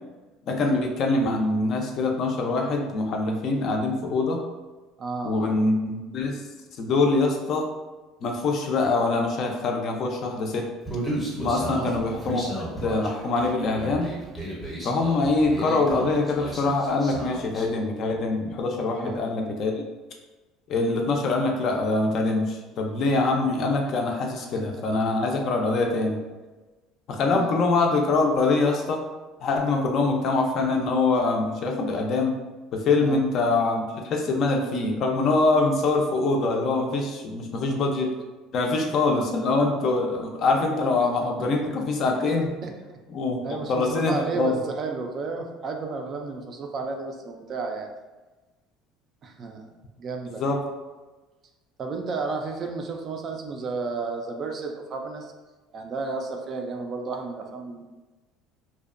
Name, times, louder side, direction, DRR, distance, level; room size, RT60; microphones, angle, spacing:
voice 1, 0.5-4.4 5.2-6.4 6.8-7.7 8.2-10.7 11.4-12.4 12.7-14.1 14.8-19.8 20.7-26.2 27.1-29.0 29.4-32.4 32.7-38.1 38.5-42.5 43.1-44.6 50.4-50.6, left 3 dB, 45° left, 2 dB, 0.4 m, -24 dB
voice 2, 5.0-5.5 11.7-12.0 14.8-15.0 19.0-19.4 20.7-20.9 24.4-24.5 24.7-24.8 27.3-27.5 33.0-33.2 37.5-37.8 42.6-43.0 43.4-47.9 49.2-49.7 50.0-50.4 51.8-55.3 55.7-57.8, right 4 dB, 35° right, 3 dB, 0.3 m, -32 dB
Human voice, 10.9-17.7, right 1 dB, 5° left, 0.7 m, -34 dB
2.6 x 2.1 x 2.4 m, 1.2 s
cardioid pair, 140°, 0 cm